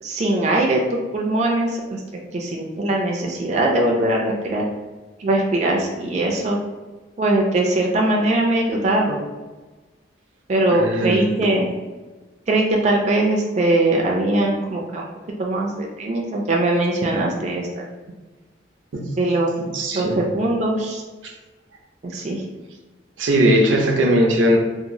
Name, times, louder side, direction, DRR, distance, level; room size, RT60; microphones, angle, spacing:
voice 1, 0.0-2.0 2.3-4.6 5.2-6.6 7.2-9.2 10.5-11.7 12.5-15.1 15.4-17.9 19.2-21.0 22.0-22.4, right 2 dB, 35° right, -1 dB, 0.3 m, -21 dB
voice 2, 10.7-11.2 18.9-19.0 19.7-20.2 21.2-21.3 23.2-24.6, equal, 90° right, 1 dB, 0.5 m, -18 dB
2.9 x 2.3 x 2.6 m, 1.2 s
head